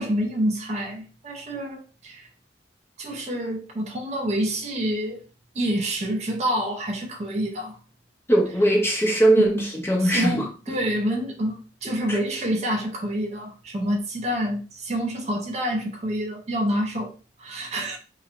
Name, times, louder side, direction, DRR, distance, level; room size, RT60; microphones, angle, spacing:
voice 1, 0.0-2.3 3.0-5.2 5.5-7.8 9.5-9.7 10.0-17.1 17.4-18.0, equal, 40° right, 0.5 m, -27 dB
voice 2, 8.3-9.6 9.8-10.8 12.1-12.2, right 1 dB, 15° left, 0.6 m, -20 dB
3.0 x 2.1 x 2.4 m
head